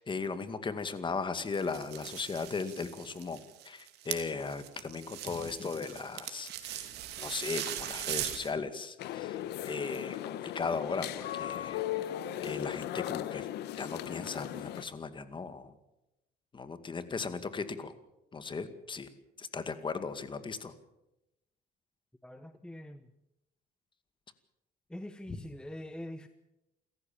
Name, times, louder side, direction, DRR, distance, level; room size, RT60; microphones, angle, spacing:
voice 1, 0.0-6.9 7.2-12.1 12.4-13.5 13.8-15.7 16.5-17.9 18.3-19.1 19.4-20.7, left 4 dB, 30° left, 11 dB, 2.2 m, -37 dB
sound 1, 1.5-8.5, right 12 dB, 80° right, 2.8 m, -40 dB
office ambience, 9.0-14.8, left 12 dB, 80° left, 1.3 m, -37 dB
voice 2, 22.2-23.1 24.9-26.3, left 1 dB, 5° left, 10 dB, 1.0 m, -44 dB
28.5 x 14.5 x 7.4 m, 0.91 s
cardioid pair, 110°, 17 cm